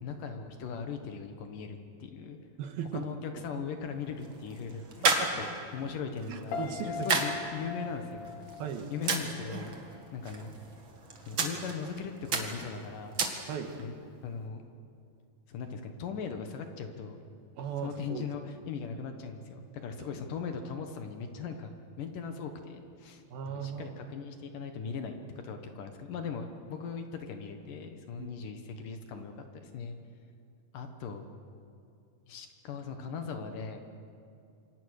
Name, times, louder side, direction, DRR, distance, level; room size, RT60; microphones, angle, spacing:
voice 1, 0.0-2.4 2.9-5.1 5.4-6.6 6.9-8.3 8.9-10.5 11.2-13.2 13.8-13.9 14.2-14.6 15.5-17.2 17.8-21.7 22.0-30.0 30.7-31.3 32.3-33.8, left 5 dB, 65° left, 6 dB, 2.7 m, -39 dB
voice 2, 2.6-3.1 5.0-5.3 6.3-6.9 8.6-8.9 13.5-13.8 17.6-18.3 20.0-20.1 23.3-24.0 28.2-28.3, right 7 dB, 75° right, 6 dB, 3.3 m, -37 dB
sound 1, 3.8-13.8, right 4 dB, 40° right, 2.1 m, -35 dB
Piano, 6.5-9.6 9.9-10.3, left 6 dB, 90° left, 4.1 m, -40 dB
27.5 x 24.5 x 6.5 m, 2.5 s
omnidirectional pair, 4.5 m